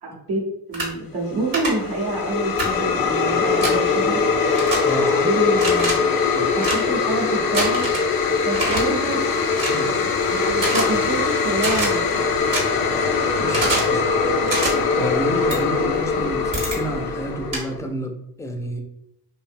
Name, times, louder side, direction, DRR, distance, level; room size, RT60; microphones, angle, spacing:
voice 1, 0.0-4.2 5.0-6.1 6.5-7.9 8.4-9.3 9.8-12.3, right 2 dB, 75° right, -2 dB, 0.9 m, -27 dB
sound 1, 0.7-0.9 1.5-1.7 2.6-2.7 3.6-3.8 4.5-4.8 5.5-5.9 6.6-6.8 7.5-8.0 8.5-8.8 9.6-9.8 10.6-10.8 11.6-11.9 12.5-12.6 13.5-13.9 14.5-14.7 15.5-15.6 16.5-16.8 17.5-17.6, right 2 dB, 55° right, 1.1 m, -24 dB
sound 2, 1.3-17.8, left 5 dB, 60° left, 0.5 m, -22 dB
voice 2, 9.6-9.9 13.3-14.0 15.0-18.8, right 1 dB, 10° left, 3 dB, 0.4 m, -29 dB
2.7 x 2.0 x 2.5 m, 0.77 s
supercardioid pair, 55°, 39 cm